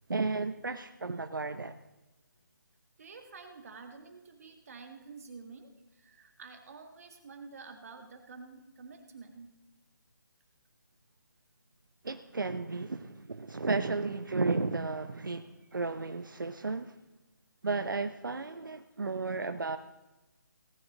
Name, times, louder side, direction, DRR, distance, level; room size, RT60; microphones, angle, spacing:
voice 1, 0.1-1.8 12.0-16.9 17.6-19.8, right 3 dB, 80° right, 9 dB, 0.8 m, -33 dB
voice 2, 3.0-9.6, right 4 dB, 45° right, 5 dB, 1.8 m, -49 dB
18.0 x 9.7 x 4.0 m, 1.0 s
figure-of-eight pair, 155°, 11 cm